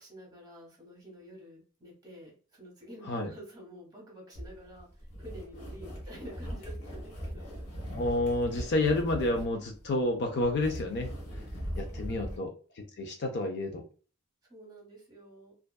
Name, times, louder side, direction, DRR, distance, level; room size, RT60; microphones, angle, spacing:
voice 1, 0.0-7.6 11.8-12.4 14.5-15.5, equal, 20° right, -2 dB, 1.1 m, -49 dB
sound 1, 4.3-12.4, equal, 85° left, 0.9 m, -40 dB
voice 2, 7.9-11.1 11.8-12.5 13.0-13.8, left 2 dB, 50° left, 4 dB, 0.4 m, -29 dB
2.5 x 2.2 x 2.2 m, 0.39 s
head